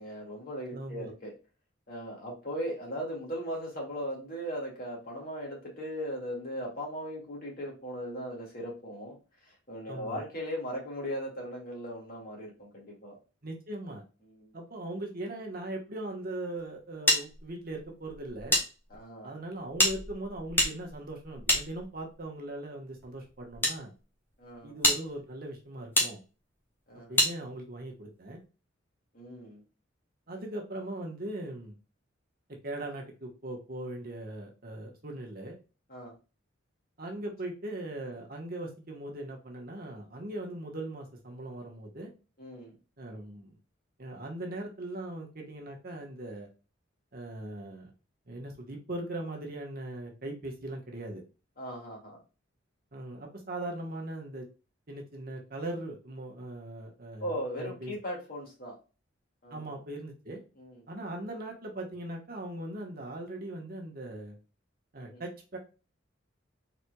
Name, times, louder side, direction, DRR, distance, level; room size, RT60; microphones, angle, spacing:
voice 1, 0.0-1.3 1.9-9.2 9.4-13.2 14.2-14.5 18.9-19.3 24.4-24.7 26.9-27.2 29.1-29.6 35.9-36.1 42.4-42.7 51.6-52.2 57.2-58.8 59.4-59.8 60.6-60.8 65.0-65.2, equal, 50° left, -2 dB, 2.2 m, -38 dB
voice 2, 0.7-1.1 9.9-10.2 13.4-14.0 14.5-18.6 19.2-23.9 24.6-26.2 26.9-28.4 30.3-31.7 32.6-35.6 37.0-42.1 43.0-43.6 44.0-46.5 47.1-47.9 48.3-51.2 52.9-54.5 54.9-57.9 59.5-60.4 60.9-64.4 64.9-65.6, right 1 dB, 50° right, 1 dB, 1.2 m, -39 dB
sound 1, 17.1-18.6 18.9-19.0 19.7-22.2 23.0-23.7 24.3-24.4 24.8-25.0 25.9-26.1 27.2-27.3, equal, 10° left, 1.3 m, -27 dB
4.4 x 4.1 x 2.3 m, 0.33 s
head